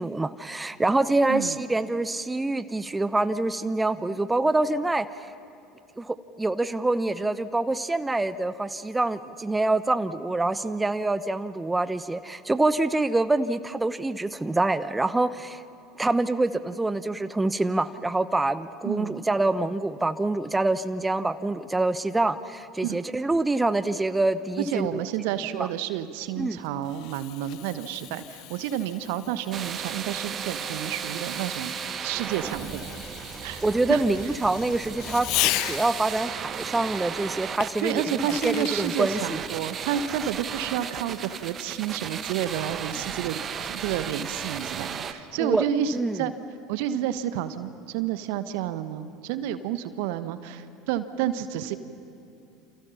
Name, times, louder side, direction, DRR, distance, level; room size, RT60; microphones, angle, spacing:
voice 1, 0.0-5.1 6.0-15.6 16.0-24.9 25.6-25.7 26.4-26.6 33.6-38.0 38.4-39.4 45.4-45.6 45.9-46.2, right 2 dB, 10° right, 13 dB, 0.9 m, -26 dB
voice 2, 1.3-1.6 18.8-19.2 22.8-23.0 24.6-31.8 32.0-32.9 33.4-33.6 33.9-34.0 37.8-46.3 46.7-51.8, right 10 dB, 65° right, 12 dB, 1.2 m, -30 dB
Fireworks, 26.2-36.2 37.6-38.9, left 18 dB, 55° left, 0.5 m, -35 dB
sound 1, 29.5-45.1, right 7 dB, 35° right, 1.4 m, -35 dB
28.5 x 28.5 x 5.8 m, 2.6 s
figure-of-eight pair, 70°, 0 cm